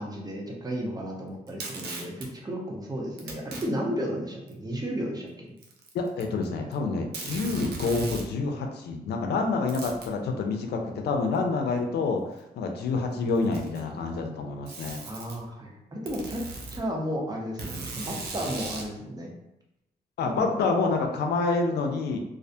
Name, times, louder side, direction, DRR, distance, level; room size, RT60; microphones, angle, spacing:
voice 1, 0.0-5.3 15.0-16.4 16.7-19.3 20.2-20.6, equal, 25° right, -1 dB, 0.7 m, -33 dB
Packing tape duct tape, 1.5-2.3 3.2-3.7 4.5-4.6 5.6-6.4 6.7-6.8 7.1-8.3 9.7-10.1 11.3-11.4 12.4-12.5 13.3-13.9 14.7-15.4 16.1-16.8 17.6-18.9, right 3 dB, 80° right, 0.5 m, -38 dB
voice 2, 5.9-15.0 20.2-22.2, left 3 dB, 85° left, 3 dB, 0.4 m, -28 dB
2.4 x 2.1 x 2.6 m, 0.88 s
cardioid pair, 70°, 17 cm